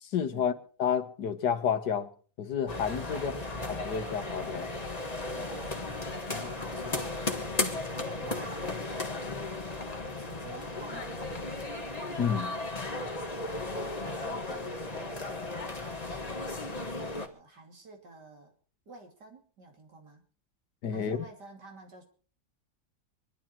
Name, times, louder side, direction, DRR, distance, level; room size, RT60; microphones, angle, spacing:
voice 1, 0.0-0.5 0.8-2.1 2.4-3.3 3.8-4.7 6.4-6.5 12.2-12.5 20.8-21.2, left 7 dB, 85° left, 1.8 m, -30 dB
the shard, 2.7-17.3, left 2 dB, 25° left, 1.6 m, -35 dB
voice 2, 3.1-3.5 5.4-9.5 9.8-11.7 13.0-18.5 18.9-20.2 20.9-22.0, right 2 dB, 85° right, 3.6 m, -50 dB
24.5 x 11.5 x 4.4 m
omnidirectional pair, 1.8 m